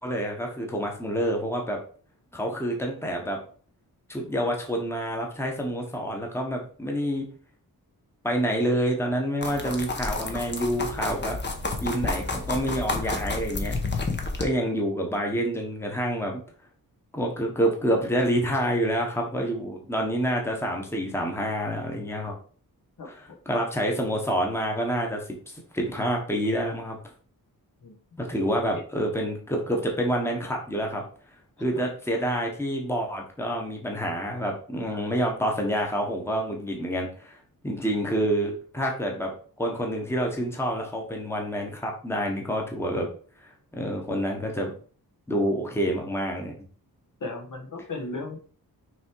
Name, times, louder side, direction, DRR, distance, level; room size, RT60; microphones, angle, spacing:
voice 1, 0.0-1.8 2.3-3.4 4.1-7.3 8.2-11.4 11.8-13.7 14.4-16.4 17.1-22.4 23.1-25.2 25.5-27.0 28.2-31.0 31.6-37.4 37.6-39.3 39.6-43.1 43.4-44.7 45.3-46.5, equal, 5° left, 1 dB, 1.2 m, -28 dB
sound 1, 9.4-14.5, left 3 dB, 30° left, 1.0 m, -30 dB
voice 2, 23.0-23.4 27.8-27.9 31.7-31.9 47.2-48.4, left 2 dB, 55° left, 2 dB, 1.4 m, -36 dB
6.3 x 3.6 x 4.6 m, 0.43 s
wide cardioid pair, 170°, 37 cm